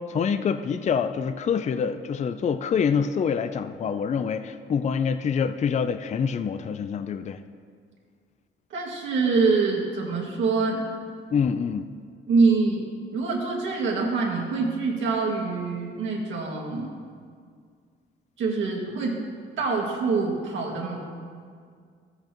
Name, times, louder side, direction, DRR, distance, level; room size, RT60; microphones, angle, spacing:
voice 1, 0.1-7.4 11.3-11.9, left 6 dB, 35° left, 11 dB, 0.4 m, -26 dB
voice 2, 8.7-10.9 12.3-12.8 13.1-16.9 18.4-19.2 19.6-21.0, right 4 dB, 75° right, -2 dB, 2.0 m, -25 dB
14.0 x 7.8 x 3.0 m, 2.1 s
cardioid pair, 90°, 20 cm